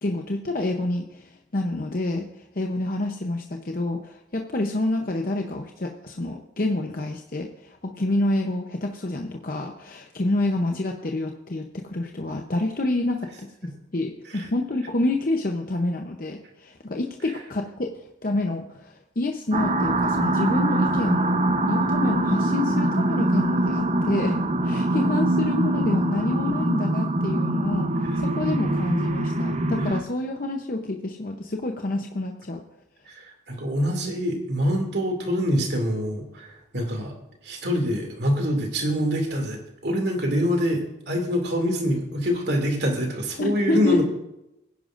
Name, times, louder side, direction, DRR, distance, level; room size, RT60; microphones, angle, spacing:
voice 1, 0.0-21.4 21.7-24.4 24.6-32.6 43.4-44.0, left 2 dB, 50° left, 3 dB, 0.8 m, -28 dB
sound 1, 19.5-30.0, right 1 dB, 35° right, 0.8 m, -23 dB
voice 2, 33.2-36.5 36.7-37.1 37.4-44.0, equal, 60° right, 2 dB, 2.5 m, -25 dB
21.5 x 10.5 x 2.6 m, 0.87 s
head